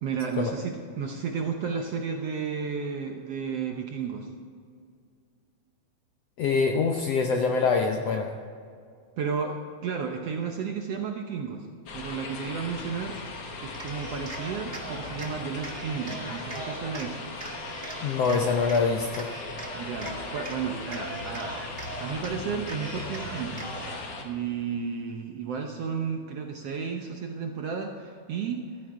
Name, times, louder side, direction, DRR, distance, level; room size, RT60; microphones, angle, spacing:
voice 1, 0.0-4.3 9.2-11.7 11.9-13.2 13.6-17.3 19.7-21.6 22.0-23.7 24.2-28.7, right 6 dB, 70° right, 3 dB, 1.5 m, -33 dB
voice 2, 6.4-8.3 18.0-19.3, left 4 dB, 75° left, 3 dB, 1.5 m, -24 dB
sound 1, 11.9-24.2, left 3 dB, 55° left, 2.2 m, -38 dB
Cheering, 13.7-15.3 15.6-17.1 17.4-18.8 19.1-20.6 20.8-22.3 22.6-24.1, right 2 dB, 25° right, 1.3 m, -40 dB
14.0 x 14.0 x 4.8 m, 2.3 s
omnidirectional pair, 3.8 m